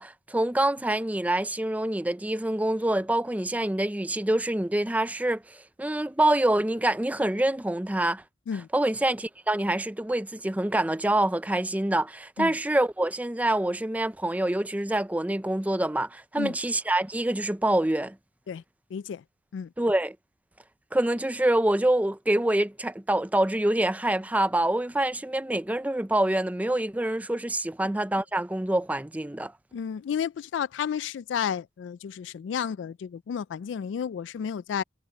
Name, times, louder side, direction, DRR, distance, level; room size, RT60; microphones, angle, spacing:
voice 1, 0.0-8.2 8.7-18.2 19.8-20.2 20.9-29.5, right 1 dB, 10° right, 0.5 m, -26 dB
voice 2, 18.9-19.2 19.5-19.7 27.8-28.0 29.7-34.8, left 7 dB, 90° left, 0.3 m, -32 dB
head